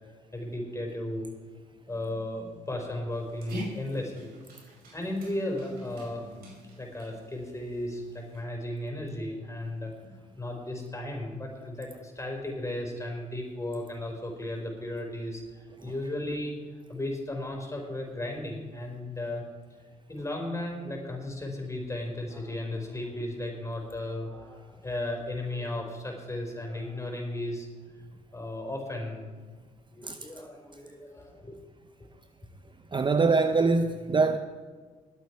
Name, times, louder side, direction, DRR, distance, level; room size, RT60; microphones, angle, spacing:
voice 1, 0.3-1.3 1.9-4.3 4.9-6.5 6.8-15.4 15.8-16.5 16.9-19.4 20.1-27.7 28.3-29.3 29.9-31.6, left 1 dB, 20° left, 5.0 m, -35 dB
Dog, 3.1-8.4, equal, 70° right, 5.4 m, -45 dB
voice 2, 32.9-34.4, right 4 dB, 30° right, 0.7 m, -23 dB
20.5 x 8.3 x 4.8 m
supercardioid pair, 60°, 17 cm